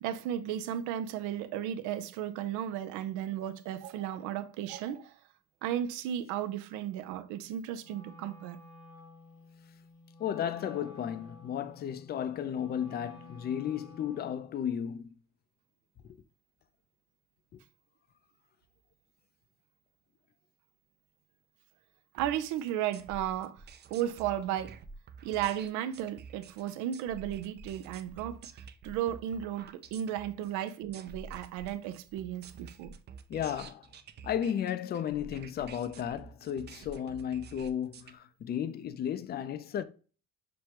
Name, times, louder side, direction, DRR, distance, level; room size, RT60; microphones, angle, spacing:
voice 1, 0.0-5.1 5.6-8.6 22.1-23.6 23.9-24.8 25.2-28.5 28.8-32.9, right 11 dB, 85° right, 0.5 m, -34 dB
Wind instrument woodwind instrument, 7.8-14.5, left 2 dB, 70° left, 1.1 m, -53 dB
voice 2, 10.2-15.1 17.5-17.6 33.3-33.9 34.2-39.8, left 9 dB, 35° left, 0.4 m, -34 dB
sound 1, 22.2-38.1, right 5 dB, 35° right, 0.4 m, -49 dB
6.2 x 2.2 x 2.8 m
cardioid pair, 105°, 29 cm